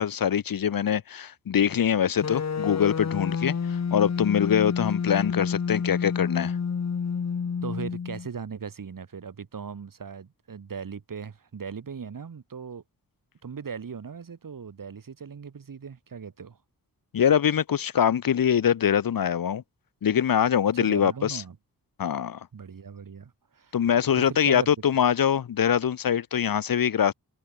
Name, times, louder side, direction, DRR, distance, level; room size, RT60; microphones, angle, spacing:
voice 1, 0.0-6.6 17.1-19.6 20.0-21.4 22.0-22.4 23.7-27.1, left 8 dB, 70° left, 1.0 m, -23 dB
sound 1, 2.2-8.3, left 6 dB, 45° left, 1.4 m, -29 dB
voice 2, 7.6-12.8 13.4-16.6 20.7-21.6 22.5-23.8 24.2-24.7, right 6 dB, 65° right, 4.1 m, -38 dB
wide cardioid pair, 110°, 36 cm